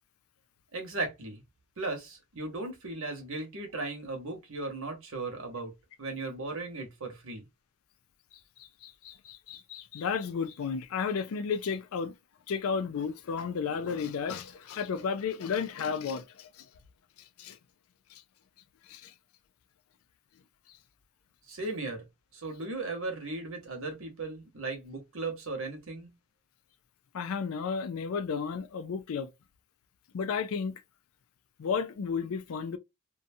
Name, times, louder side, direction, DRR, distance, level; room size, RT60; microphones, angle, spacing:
voice 1, 0.7-1.4 1.8-5.7 6.0-7.4 21.5-22.0 22.3-26.1, right 3 dB, 70° right, 1.0 m, -36 dB
voice 2, 8.6-12.1 12.5-16.7 17.4-17.6 18.1-18.2 18.9-19.1 27.1-29.3 30.1-30.7 31.6-32.8, left 6 dB, 80° left, 0.4 m, -33 dB
2.7 x 2.2 x 2.6 m
head